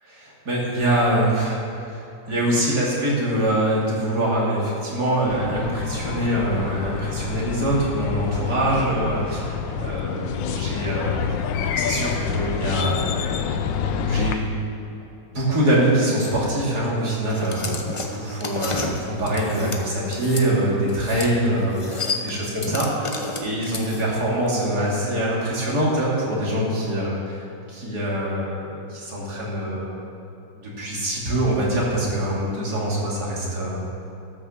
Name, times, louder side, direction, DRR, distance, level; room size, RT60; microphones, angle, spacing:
voice 1, 0.2-11.1 11.8-13.3 13.8-14.4 15.3-29.9 30.5-33.8, right 1 dB, 60° right, -5 dB, 3.2 m, -24 dB
sound 1, 5.3-14.4, left 7 dB, 85° left, 1.4 m, -27 dB
sound 2, 17.3-20.5 20.9-21.3 21.6-24.2, left 3 dB, 30° left, 0.6 m, -31 dB
13.0 x 6.3 x 7.1 m, 2.8 s
omnidirectional pair, 1.9 m